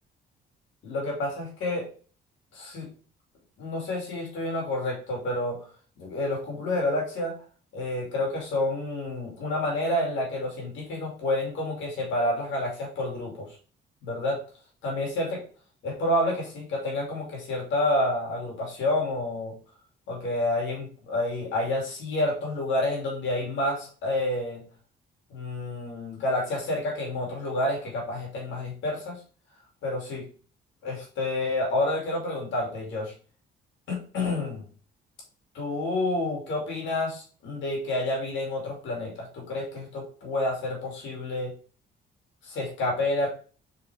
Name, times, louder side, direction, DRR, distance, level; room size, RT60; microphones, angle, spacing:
voice 1, 0.8-1.9 2.5-2.9 3.6-5.6 6.0-7.3 7.7-13.5 14.0-14.4 14.8-15.4 15.8-19.5 20.1-24.6 25.3-29.2 29.8-30.2 30.8-33.1 33.9-34.6 35.5-41.5 42.4-43.3, left 1 dB, 80° left, -1 dB, 2.5 m, -29 dB
4.5 x 4.4 x 4.8 m, 0.40 s
cardioid pair, 100°, 19 cm